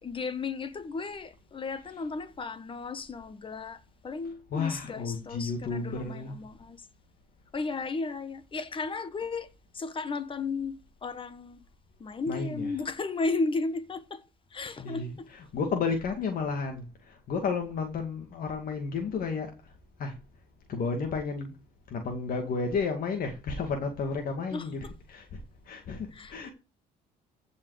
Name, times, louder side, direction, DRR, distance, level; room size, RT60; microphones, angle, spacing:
voice 1, 0.0-6.8 7.5-9.5 9.7-11.6 12.0-14.2 14.5-15.3 24.5-24.6 26.1-26.5, left 3 dB, 30° left, 1.3 m, -34 dB
voice 2, 4.5-6.4 12.3-12.8 14.8-19.5 20.0-20.1 20.7-21.5 21.9-25.4 25.7-26.5, left 4 dB, 55° left, 2.2 m, -32 dB
15.0 x 5.6 x 4.9 m
cardioid pair, 110°, 17 cm